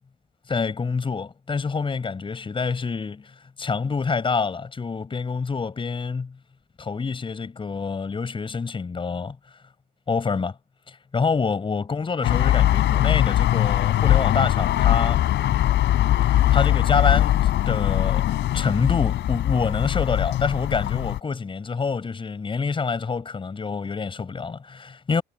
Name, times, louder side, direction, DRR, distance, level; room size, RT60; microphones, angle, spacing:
voice 1, 0.5-6.4 6.8-9.4 10.1-10.6 10.9-15.2 16.2-18.2 18.5-25.2, left 5 dB, 30° left, 7.1 m, -27 dB
sound 1, 12.2-21.2, left 13 dB, 85° left, 4.5 m, -21 dB
cardioid pair, 140°, 18 cm